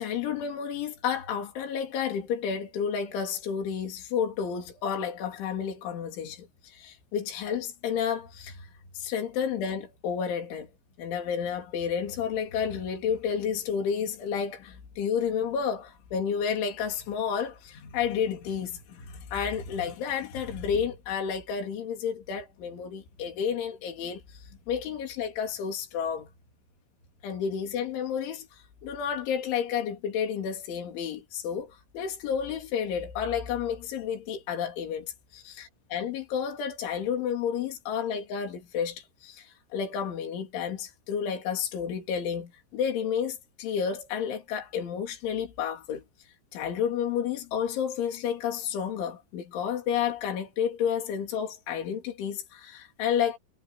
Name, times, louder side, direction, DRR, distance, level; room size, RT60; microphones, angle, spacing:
voice 1, 0.0-8.7 8.9-10.7 11.0-26.3 27.2-46.0 46.5-53.4, left 7 dB, 75° left, 5.9 m, -31 dB
omnidirectional pair, 5.5 m